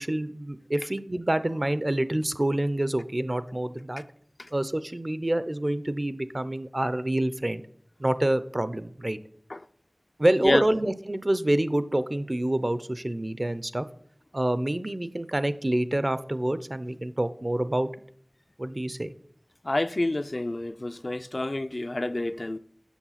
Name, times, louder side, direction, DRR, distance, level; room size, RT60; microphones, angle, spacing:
voice 1, 0.0-4.0 4.5-7.6 8.0-9.2 10.2-13.9 14.3-17.9 18.6-19.1, right 1 dB, 45° right, 0.5 m, -27 dB
voice 2, 19.6-22.6, left 2 dB, 60° left, 0.3 m, -28 dB
7.2 x 6.2 x 5.7 m
wide cardioid pair, 45°, 0 cm